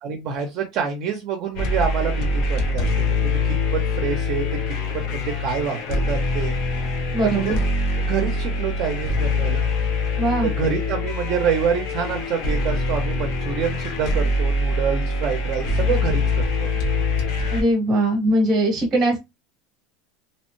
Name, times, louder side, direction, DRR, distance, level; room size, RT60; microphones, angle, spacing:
voice 1, 0.0-4.4 4.9-6.6 7.2-7.6 8.0-9.6 10.4-16.7, right 7 dB, 40° right, 4 dB, 0.5 m, -27 dB
sound 1, 1.6-17.6, left 2 dB, 45° left, 0.7 m, -24 dB
voice 2, 7.1-7.6 10.2-10.5 17.5-19.2, right 1 dB, 20° right, 0 dB, 0.8 m, -20 dB
2.8 x 2.1 x 3.0 m, 0.22 s
cardioid pair, 175°, 0 cm